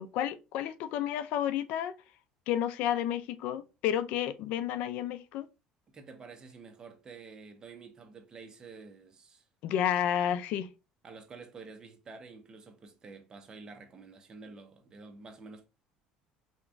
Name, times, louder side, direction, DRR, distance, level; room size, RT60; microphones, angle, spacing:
voice 1, 0.0-1.9 2.5-5.5 9.6-10.7, left 10 dB, 70° left, 0.3 m, -31 dB
voice 2, 5.9-9.4 11.0-15.7, right 4 dB, 30° right, 0.8 m, -49 dB
3.5 x 2.9 x 2.5 m
supercardioid pair, 105°, 2 cm